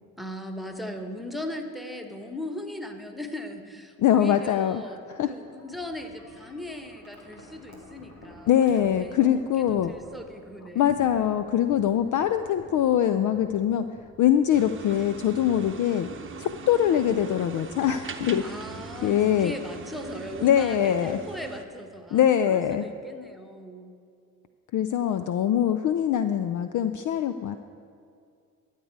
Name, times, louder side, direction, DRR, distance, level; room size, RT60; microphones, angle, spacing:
voice 1, 0.2-5.0 5.3-8.5 8.8-10.9 18.4-23.9, left 1 dB, ahead, 5 dB, 1.3 m, -39 dB
voice 2, 4.0-4.8 5.1-5.3 8.5-9.9 10.7-16.1 16.4-18.6 19.0-19.5 20.4-21.2 22.1-22.8 24.7-27.6, left 10 dB, 45° left, 10 dB, 0.5 m, -23 dB
Wind chime, 5.6-21.8, equal, 90° left, 1.6 m, -52 dB
sound 1, 14.5-21.6, right 5 dB, 30° right, 0.9 m, -41 dB
13.0 x 8.1 x 4.7 m, 2.3 s
figure-of-eight pair, 45°, 44 cm